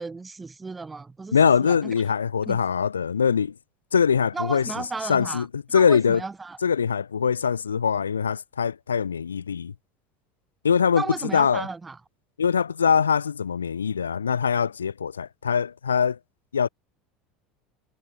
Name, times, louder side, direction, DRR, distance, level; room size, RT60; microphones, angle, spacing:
voice 1, 0.0-1.9 2.5-2.6 4.3-5.5 5.7-6.6 10.9-12.0, right 4 dB, 15° right, 3.2 m, -34 dB
voice 2, 1.3-3.5 3.9-4.6 5.1-6.2 6.6-9.7 10.6-11.0 11.3-11.7 12.4-16.2 16.5-16.7, left 6 dB, 80° left, 0.8 m, -22 dB
figure-of-eight pair, 70°, 0 cm